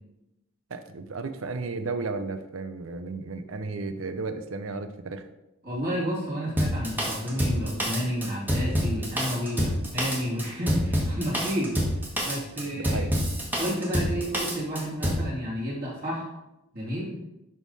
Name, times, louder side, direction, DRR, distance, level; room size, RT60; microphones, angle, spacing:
voice 1, 0.7-5.3 9.6-9.7 12.6-13.1, right 3 dB, 85° right, 10 dB, 0.7 m, -34 dB
voice 2, 5.6-11.8 12.2-13.0 13.6-16.3 16.7-17.1, equal, 45° right, -6 dB, 2.4 m, -30 dB
Drum kit, 6.6-15.3, equal, 10° right, 1.3 m, -27 dB
11.0 x 3.6 x 4.1 m, 0.92 s
head